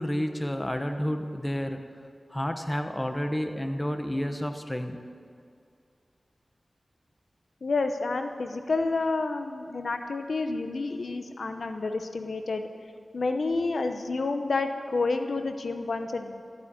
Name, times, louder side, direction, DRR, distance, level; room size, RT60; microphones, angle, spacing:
voice 1, 0.0-1.8 2.3-5.0, equal, 15° left, 6 dB, 1.2 m, -30 dB
voice 2, 7.6-12.7 13.1-16.4, left 3 dB, 85° left, 6 dB, 0.9 m, -29 dB
14.0 x 8.9 x 8.7 m, 2.3 s
wide cardioid pair, 60°, 0 cm